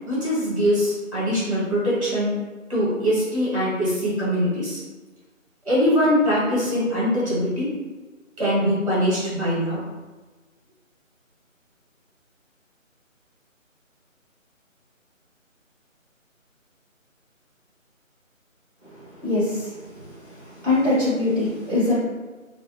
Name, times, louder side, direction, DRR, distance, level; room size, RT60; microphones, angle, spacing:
voice 1, 0.1-2.3 2.7-4.8 5.6-7.7 8.4-9.8, equal, 25° right, -8 dB, 1.2 m, -22 dB
voice 2, 19.2-20.0 20.6-22.0, left 2 dB, ahead, -22 dB, 1.0 m, -22 dB
2.3 x 2.3 x 2.9 m, 1.2 s
figure-of-eight pair, 160°, 40 cm